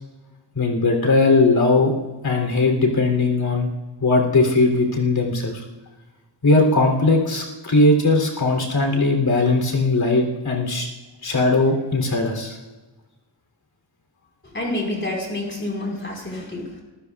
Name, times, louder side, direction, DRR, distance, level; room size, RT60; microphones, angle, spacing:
voice 1, 0.6-1.9 2.2-3.7 4.0-5.6 6.4-10.9 11.2-12.6, left 2 dB, 55° left, 2 dB, 3.4 m, -19 dB
voice 2, 14.4-16.8, left 1 dB, 25° left, -2 dB, 4.6 m, -28 dB
25.0 x 15.0 x 2.4 m, 1.2 s
wide cardioid pair, 115°, 44 cm